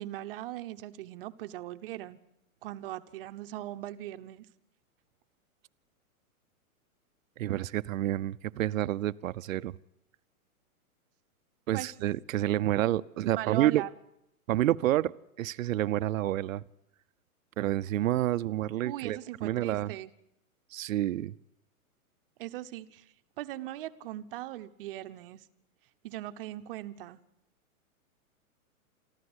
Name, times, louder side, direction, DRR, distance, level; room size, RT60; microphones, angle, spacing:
voice 1, 0.0-2.2 2.6-4.5 11.7-11.9 13.4-13.9 18.8-20.1 22.4-25.4 26.0-27.2, right 15 dB, 40° right, 0.9 m, -39 dB
voice 2, 7.4-9.8 11.7-13.8 14.5-15.1 15.4-16.6 17.6-19.9 20.7-21.3, right 13 dB, 65° right, 0.7 m, -29 dB
24.5 x 14.5 x 8.0 m
hypercardioid pair, 155°, 44 cm